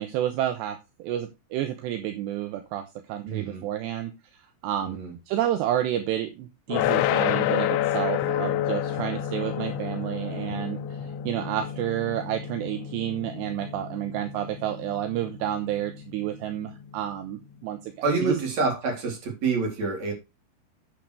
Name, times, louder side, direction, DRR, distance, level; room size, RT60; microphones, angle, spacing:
voice 1, 0.0-4.1 4.6-5.0 5.3-17.9 18.2-18.4, right 12 dB, 75° right, 2.9 m, -30 dB
voice 2, 3.2-3.6 4.8-5.1 18.0-20.1, right 4 dB, 35° right, 4.6 m, -27 dB
sound 1, 6.7-17.7, left 11 dB, 75° left, 2.9 m, -30 dB
10.0 x 8.9 x 3.3 m
omnidirectional pair, 5.6 m